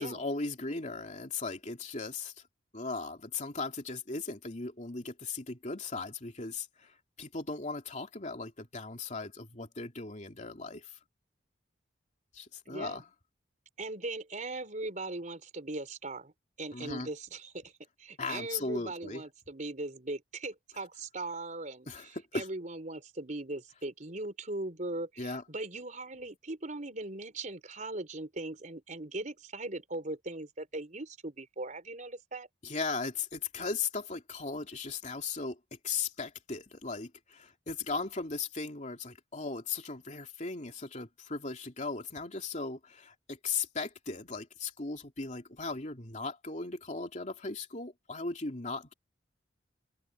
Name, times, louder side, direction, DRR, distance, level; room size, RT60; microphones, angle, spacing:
voice 1, 0.0-2.3 2.7-11.0 12.3-13.0 16.7-17.1 18.2-19.2 21.9-22.5 25.2-25.4 32.6-35.6 35.8-48.9, left 4 dB, 40° left, 2.9 m, -37 dB
voice 2, 12.7-13.0 13.8-16.3 16.6-17.7 18.0-32.5, right 2 dB, 45° right, 4.3 m, -39 dB
open air
head